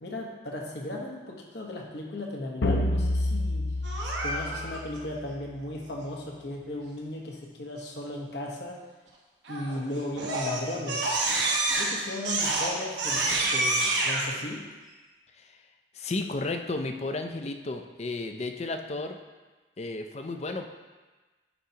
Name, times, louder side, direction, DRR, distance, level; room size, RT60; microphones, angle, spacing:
voice 1, 0.0-3.6 4.0-8.8 9.5-11.2 11.8-14.6, left 1 dB, 65° left, -1 dB, 1.1 m, -36 dB
sound 1, 2.6-5.2, left 1 dB, 90° left, 0.7 m, -28 dB
Crying sobbing, 3.8-4.8 9.5-9.8 10.2-14.3, right 2 dB, 85° right, 1.2 m, -28 dB
voice 2, 15.9-19.2 19.8-20.7, left 2 dB, 35° left, 6 dB, 0.4 m, -33 dB
9.9 x 4.5 x 2.8 m, 1.3 s
head